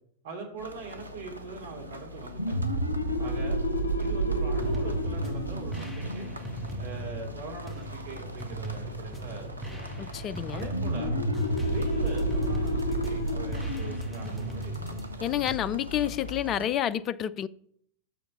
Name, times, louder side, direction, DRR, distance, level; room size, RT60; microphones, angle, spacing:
voice 1, 0.2-2.6 3.2-3.6 4.0-6.3 6.8-9.9 10.5-11.2 11.6-15.0, right 3 dB, 55° right, 2.7 m, -42 dB
sound 1, 0.6-16.7, left 1 dB, 85° right, 0.8 m, -43 dB
sound 2, 2.3-7.7 10.7-16.0, right 1 dB, 90° left, 0.7 m, -30 dB
sound 3, 4.6-15.6, right 1 dB, 5° left, 1.2 m, -39 dB
voice 2, 10.0-10.7 15.2-17.5, left 10 dB, 30° left, 0.4 m, -29 dB
7.0 x 6.5 x 5.7 m
figure-of-eight pair, 90°, 0 cm